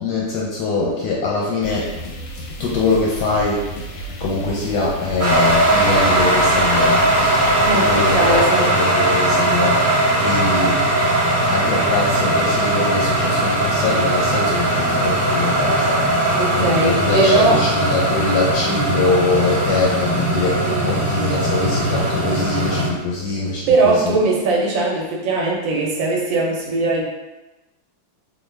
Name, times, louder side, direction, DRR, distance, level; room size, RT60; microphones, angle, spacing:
voice 1, 0.0-1.9 2.6-3.6 3.9-7.1 7.7-10.8 11.5-24.2, left 3 dB, 70° left, -3 dB, 1.0 m, -23 dB
sound 1, 1.6-8.5, right 1 dB, 90° left, 1.4 m, -33 dB
sound 2, 5.2-22.9, right 1 dB, 15° right, 0.5 m, -19 dB
voice 2, 7.6-8.7 16.4-17.6 20.6-21.0 23.7-27.0, right 2 dB, 75° right, -1 dB, 1.3 m, -19 dB
3.5 x 2.2 x 3.2 m, 1.0 s
omnidirectional pair, 2.1 m